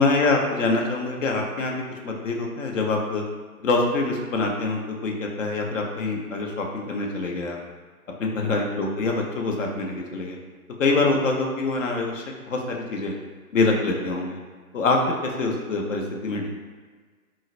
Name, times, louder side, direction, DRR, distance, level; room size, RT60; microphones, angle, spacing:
voice 1, 0.0-1.8 2.0-3.2 3.6-7.6 8.2-10.4 10.8-13.1 13.5-14.4 14.7-16.5, left 3 dB, 60° left, 1 dB, 0.6 m, -25 dB
3.9 x 2.1 x 2.4 m, 1.5 s
figure-of-eight pair, 135°, 44 cm